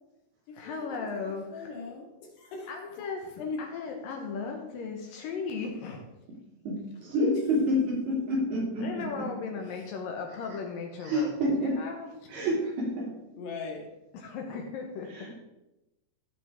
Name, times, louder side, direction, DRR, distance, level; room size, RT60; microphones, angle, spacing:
voice 1, 0.5-1.8 2.7-6.0 8.8-12.5 14.1-15.3, left 5 dB, 70° left, 2 dB, 2.4 m, -37 dB
voice 2, 1.5-2.7 3.4-3.6 13.4-13.9, left 4 dB, 85° left, 0 dB, 4.0 m, -38 dB
voice 3, 6.6-9.3 11.0-11.8 12.3-13.1 15.1-15.4, equal, 70° right, -4 dB, 4.7 m, -28 dB
15.5 x 5.8 x 3.6 m, 0.94 s
omnidirectional pair, 4.7 m